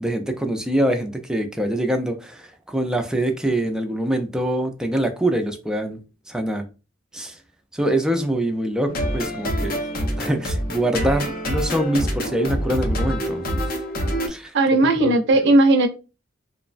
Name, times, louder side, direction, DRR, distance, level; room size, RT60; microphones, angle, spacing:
voice 1, 0.0-6.0 6.3-6.6 7.1-7.4 7.7-9.8 10.2-13.6 14.3-14.6 14.8-15.5, right 1 dB, 5° right, 0.3 m, -24 dB
sound 1, 8.9-14.3, equal, 45° left, 0.5 m, -26 dB
voice 2, 14.5-15.9, right 2 dB, 60° right, 0.5 m, -16 dB
3.0 x 2.1 x 2.4 m
head